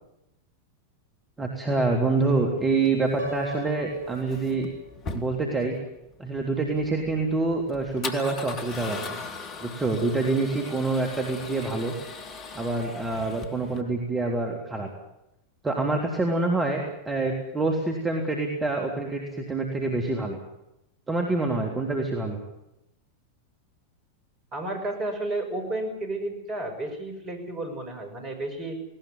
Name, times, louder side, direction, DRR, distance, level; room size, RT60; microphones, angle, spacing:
voice 1, 1.4-4.7 5.1-5.8 6.2-9.2 9.6-11.9 12.5-14.9 15.6-20.4 21.1-22.4, right 3 dB, 15° right, 1 dB, 3.3 m, -26 dB
Male speech man speaking / Car / Engine starting, 2.7-13.8, left 4 dB, 30° left, 2.5 m, -40 dB
Piano, 3.2-5.1, equal, 65° right, 6.8 m, -38 dB
voice 2, 24.5-28.8, right 2 dB, 30° right, 5 dB, 6.5 m, -32 dB
19.5 x 18.5 x 9.5 m, 0.86 s
figure-of-eight pair, 90°, 0 cm